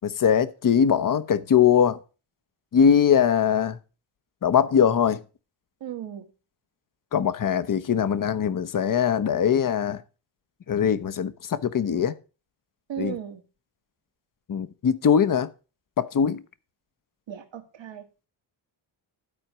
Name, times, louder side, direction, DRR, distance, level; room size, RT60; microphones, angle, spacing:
voice 1, 0.0-2.0 2.7-3.8 4.4-5.2 7.1-10.0 10.7-12.1 13.0-13.2 14.5-15.5 16.0-16.4, left 8 dB, 45° left, 0.9 m, -21 dB
voice 2, 5.8-6.2 12.9-13.4 17.3-18.0, right 10 dB, 65° right, 1.8 m, -35 dB
12.0 x 4.4 x 6.1 m
cardioid pair, 80°, 47 cm